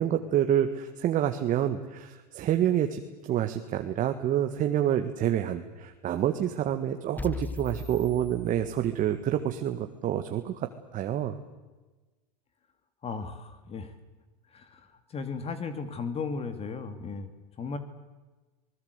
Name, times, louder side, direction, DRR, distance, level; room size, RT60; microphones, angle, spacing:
voice 1, 0.0-10.6 10.9-11.4, right 10 dB, 40° right, 6 dB, 1.7 m, -28 dB
sound 1, 7.2-9.2, left 3 dB, 10° left, 0.9 m, -39 dB
voice 2, 13.0-13.9 14.5-17.3 17.6-17.8, left 4 dB, 30° left, 10 dB, 2.3 m, -36 dB
25.5 x 20.5 x 8.2 m, 1.2 s
hypercardioid pair, 110°, 21 cm